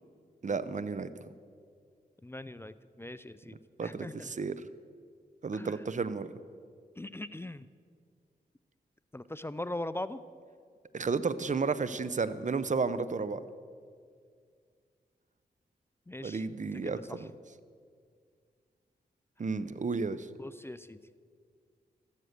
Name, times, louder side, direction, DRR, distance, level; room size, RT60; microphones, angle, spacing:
voice 1, 0.4-1.1 3.8-4.5 5.4-6.3 10.9-13.4 16.2-17.0 19.4-20.3, right 4 dB, 45° right, 15 dB, 0.7 m, -32 dB
voice 2, 2.2-4.3 5.5-5.8 7.0-7.7 9.1-10.2 16.1-17.3 20.4-21.0, left 1 dB, 15° left, 14 dB, 0.5 m, -41 dB
14.0 x 12.5 x 6.7 m, 2.1 s
cardioid pair, 55°, 17 cm